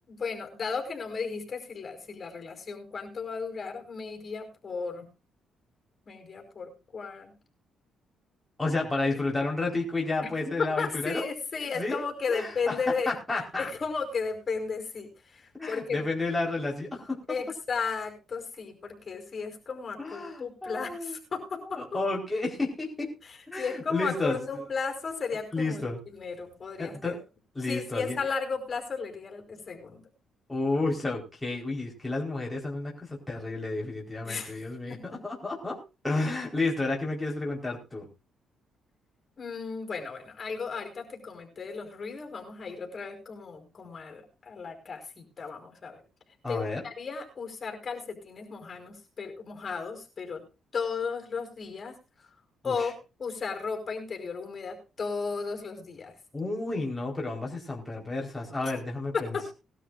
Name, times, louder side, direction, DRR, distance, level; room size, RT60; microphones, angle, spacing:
voice 1, 0.1-5.1 6.1-7.3 9.1-9.2 10.2-10.3 10.6-13.1 13.6-16.0 17.3-22.0 23.2-27.2 27.6-30.0 34.2-34.6 34.9-35.2 39.4-46.0 46.5-50.4 50.7-52.3 52.6-52.9 53.2-56.1 58.6-58.7 59.1-59.5, left 5 dB, 40° left, 4 dB, 5.1 m, -35 dB
voice 2, 8.6-11.3 11.8-12.0 12.3-12.7 13.1-13.7 15.6-17.2 20.0-21.1 21.8-23.1 23.5-24.4 25.5-26.0 26.8-27.2 27.6-28.2 30.5-35.8 36.0-38.1 46.4-46.8 52.6-52.7 56.3-59.5, left 2 dB, 10° left, -2 dB, 4.5 m, -31 dB
20.5 x 12.5 x 2.6 m, 0.30 s
cardioid pair, 90°, 0 cm